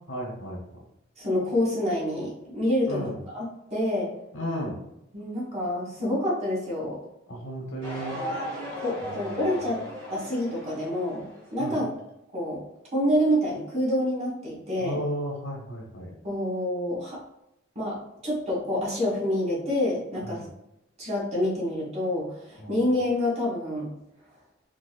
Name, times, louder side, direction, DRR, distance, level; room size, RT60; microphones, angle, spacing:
voice 1, 0.1-0.6 2.9-3.2 4.3-4.8 7.3-8.2 9.0-9.7 11.6-11.8 14.8-16.1 20.2-20.5 22.6-22.8, equal, 65° left, -1 dB, 0.9 m, -34 dB
voice 2, 1.2-4.1 5.1-7.0 8.8-9.8 10.1-11.9 12.3-12.6 12.9-15.0 16.2-17.2 17.7-18.0 18.2-20.4 21.0-23.9, left 1 dB, 35° right, -6 dB, 1.5 m, -27 dB
sound 1, 7.8-11.8, equal, 75° right, 1.1 m, -37 dB
4.0 x 2.8 x 2.3 m, 0.86 s
head